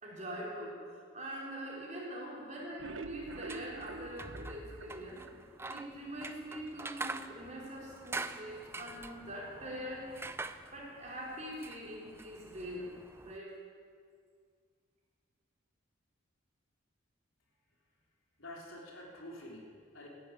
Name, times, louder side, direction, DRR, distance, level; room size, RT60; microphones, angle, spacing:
voice 1, 0.0-5.2 5.7-10.2 10.7-12.9 13.2-13.6, equal, 35° right, -4 dB, 4.1 m, -43 dB
sound 1, 2.6-5.8 6.2-6.3 6.7-6.8 7.1-7.2, right 3 dB, 70° right, 0.7 m, -46 dB
sound 2, 3.3-13.4, right 3 dB, 10° right, 0.4 m, -45 dB
voice 2, 18.4-20.1, left 1 dB, 75° left, -2 dB, 3.6 m, -48 dB
15.0 x 11.0 x 8.5 m, 2.1 s
head